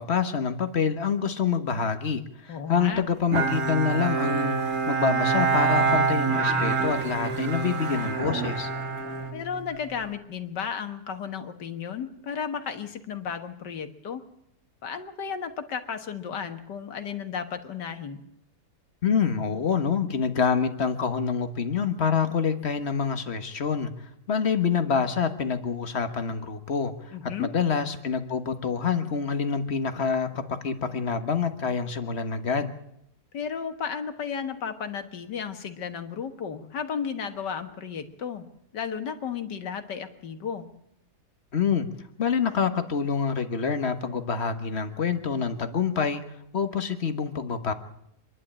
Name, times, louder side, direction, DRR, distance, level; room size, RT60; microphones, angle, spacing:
voice 1, 0.0-8.7 19.0-32.7 41.5-41.9 42.2-46.2 46.5-47.7, left 6 dB, 40° left, 9 dB, 1.5 m, -26 dB
voice 2, 2.5-3.0 9.3-14.2 14.8-18.2 27.1-27.5 33.3-38.5 38.7-40.7, left 7 dB, 80° left, 7 dB, 2.1 m, -34 dB
Bowed string instrument, 3.3-10.0, right 5 dB, 55° right, 2.1 m, -26 dB
26.0 x 11.5 x 8.8 m, 0.79 s
omnidirectional pair, 1.8 m